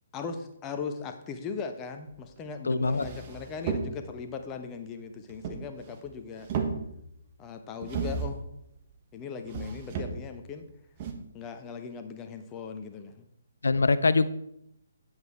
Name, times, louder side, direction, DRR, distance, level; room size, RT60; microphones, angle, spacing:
voice 1, 0.1-6.5 7.4-8.4 9.1-10.6 11.3-13.3, left 5 dB, 20° left, 7 dB, 0.9 m, -38 dB
sound 1, 2.4-2.5 2.8-4.2 5.3-6.1 6.3-7.2 7.8-8.5 9.5-10.4 11.0-11.1, right 5 dB, 30° right, 1.2 m, -34 dB
voice 2, 2.7-3.1 13.6-14.3, left 3 dB, 65° left, 15 dB, 0.5 m, -23 dB
9.3 x 8.0 x 4.3 m, 0.77 s
figure-of-eight pair, 135°, 0 cm